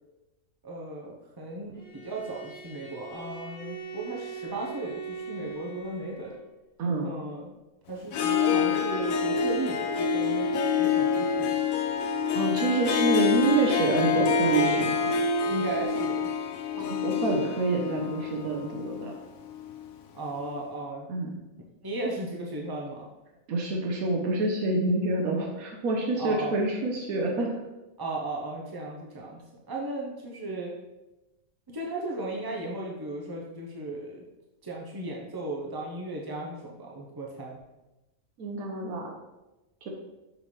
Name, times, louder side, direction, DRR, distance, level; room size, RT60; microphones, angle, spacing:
voice 1, 0.6-6.4 7.0-7.5 7.9-11.5 15.5-16.3 20.1-21.1 21.8-23.1 26.2-26.5 28.0-29.4 29.7-30.7 31.7-34.2 34.6-37.6, right 1 dB, 30° right, -2 dB, 0.4 m, -36 dB
Bowed string instrument, 1.7-6.5, right 5 dB, 5° left, 1.8 m, -41 dB
voice 2, 6.8-7.1 12.3-15.1 16.8-19.1 21.1-21.4 23.5-27.5 38.4-39.1 39.8-39.9, right 3 dB, 85° right, 0 dB, 1.2 m, -27 dB
Harp, 8.1-19.9, left 5 dB, 80° left, 1.0 m, -27 dB
5.7 x 5.4 x 3.1 m, 1.0 s
omnidirectional pair, 1.4 m